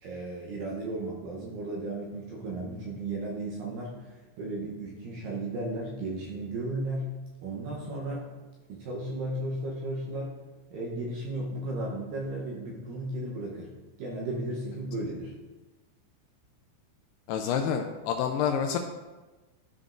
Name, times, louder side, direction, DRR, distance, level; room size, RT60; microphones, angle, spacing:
voice 1, 0.0-7.1 7.4-8.3 8.7-10.3 10.7-13.7 14.0-15.3, right 2 dB, 75° right, -3 dB, 2.1 m, -35 dB
voice 2, 17.3-18.8, left 7 dB, 85° left, 5 dB, 2.3 m, -28 dB
13.0 x 5.3 x 2.5 m, 1.2 s
omnidirectional pair, 4.9 m